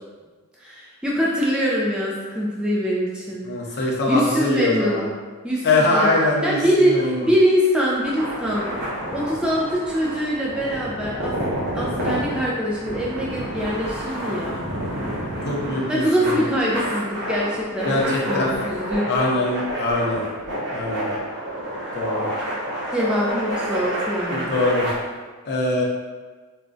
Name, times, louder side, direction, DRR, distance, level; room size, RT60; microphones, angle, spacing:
voice 1, 0.6-3.8 4.1-5.0 5.4-6.1 6.4-8.7 9.1-11.3 11.7-14.6 15.9-19.1 22.9-24.5, equal, 5° right, -5 dB, 0.3 m, -23 dB
voice 2, 3.4-5.0 5.6-7.3 15.5-16.4 17.8-18.6 19.0-20.2 20.7-21.1 21.9-22.3 24.3-24.9 25.5-25.8, left 2 dB, 50° left, -3 dB, 0.5 m, -23 dB
sound 1, 7.9-24.9, equal, 50° right, 0.8 m, -29 dB
2.4 x 2.1 x 3.7 m, 1.4 s
head